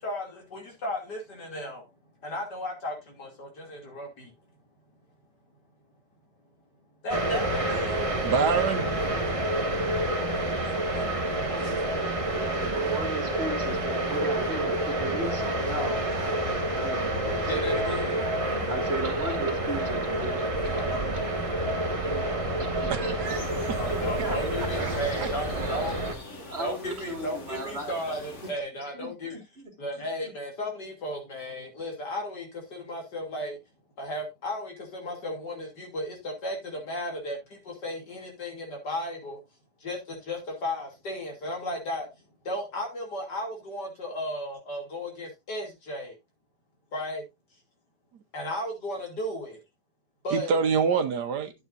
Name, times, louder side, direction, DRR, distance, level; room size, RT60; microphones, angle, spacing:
voice 1, 0.0-1.8 2.2-4.3 7.0-7.4 7.7-8.0 10.6-11.0 17.5-18.2 20.7-21.0 23.8-26.0 26.6-29.4 29.8-33.6 34.0-37.4 37.7-39.4 39.8-42.1 42.5-46.1 46.9-47.2 48.3-49.6 50.2-50.5, left 1 dB, 75° left, 3.4 m, -34 dB
sound 1, 7.1-26.1, right 1 dB, 20° right, 1.5 m, -28 dB
voice 2, 8.2-8.9 22.9-23.4 23.7-23.8 24.8-25.3 25.6-25.7 50.3-51.5, right 6 dB, 75° right, 1.5 m, -26 dB
voice 3, 12.3-17.4 18.4-20.8 21.1-21.2 22.6-23.4 23.9-25.0 25.7-25.8 26.3-27.9 28.9-29.7 30.2-30.3, right 2 dB, 40° right, 2.8 m, -36 dB
sound 2, 23.2-28.5, left 3 dB, 45° left, 2.2 m, -44 dB
12.0 x 8.0 x 2.6 m
omnidirectional pair, 1.8 m